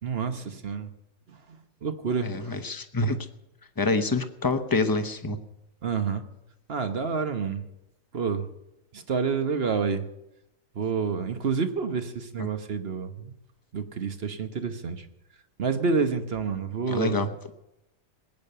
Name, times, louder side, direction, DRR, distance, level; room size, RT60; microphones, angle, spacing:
voice 1, 0.0-0.9 1.3-1.4 1.8-2.6 5.8-6.2 6.7-7.7 8.1-8.5 8.9-10.1 10.7-13.3 13.7-15.1 15.6-17.2, right 5 dB, 40° right, 8 dB, 1.1 m, -28 dB
voice 2, 2.2-3.2 3.8-5.4 12.4-12.5 16.9-17.3, left 2 dB, 20° left, 8 dB, 0.6 m, -26 dB
19.5 x 8.9 x 6.8 m, 0.87 s
omnidirectional pair, 1.7 m